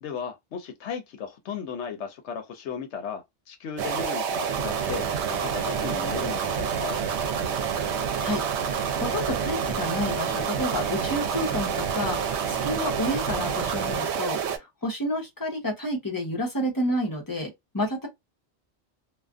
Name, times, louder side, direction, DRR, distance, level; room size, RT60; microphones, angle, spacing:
voice 1, 0.0-7.0, left 7 dB, 80° left, 0.9 m, -36 dB
sound 1, 3.8-14.6, right 7 dB, 80° right, 0.9 m, -28 dB
voice 2, 9.0-12.2 12.5-18.1, left 1 dB, 20° left, 0.8 m, -30 dB
2.4 x 2.3 x 2.3 m
omnidirectional pair, 1.2 m